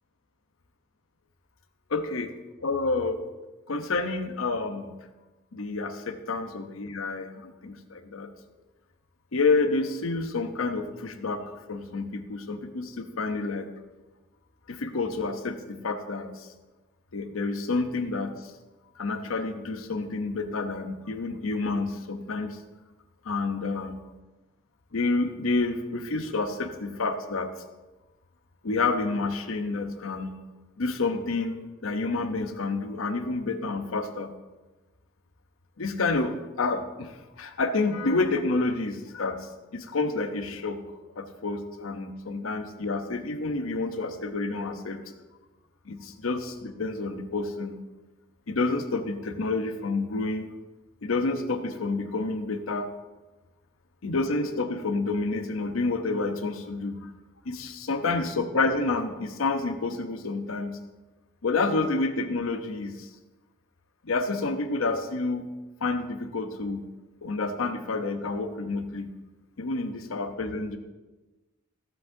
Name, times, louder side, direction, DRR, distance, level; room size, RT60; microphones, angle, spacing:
voice 1, 1.9-2.3 2.6-3.2 3.7-4.9 5.5-8.3 9.3-13.7 14.7-16.5 17.1-18.5 19.0-22.6 23.2-24.0 24.9-27.5 28.6-30.4 30.8-31.5 31.8-34.3 35.8-40.8 41.2-45.0 45.9-47.8 48.5-50.5 51.0-52.9 54.0-57.1 57.4-60.8 61.4-63.1 64.0-65.5 65.8-66.8 67.2-69.1 69.6-70.8, left 3 dB, 85° left, 8 dB, 0.8 m, -29 dB
14.0 x 7.8 x 2.7 m, 1.2 s
head